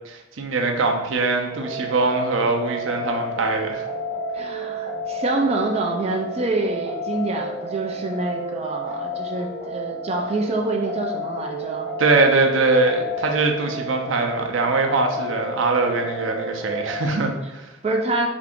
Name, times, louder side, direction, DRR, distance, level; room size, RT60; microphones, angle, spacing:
voice 1, 0.0-3.8 12.0-17.7, right 3 dB, 85° right, 3 dB, 0.6 m, -22 dB
sound 1, 1.5-17.1, equal, 30° left, 1.1 m, -31 dB
voice 2, 4.3-11.9 17.8-18.3, right 2 dB, 35° right, 1 dB, 0.4 m, -26 dB
4.5 x 2.5 x 3.6 m, 1.0 s
head